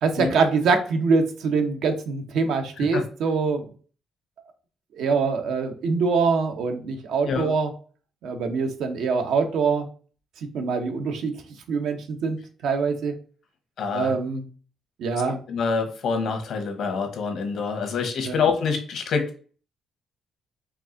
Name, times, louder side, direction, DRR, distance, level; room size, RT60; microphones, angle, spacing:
voice 1, 0.0-3.7 5.0-7.7 8.2-9.9 10.4-11.4 11.7-13.1 13.9-14.4 15.0-15.4 18.2-18.4, right 4 dB, 80° right, 5 dB, 0.9 m, -24 dB
voice 2, 13.8-14.1 15.5-19.4, left 5 dB, 70° left, 6 dB, 1.2 m, -26 dB
4.7 x 2.5 x 3.8 m, 0.40 s
cardioid pair, 90°, 0 cm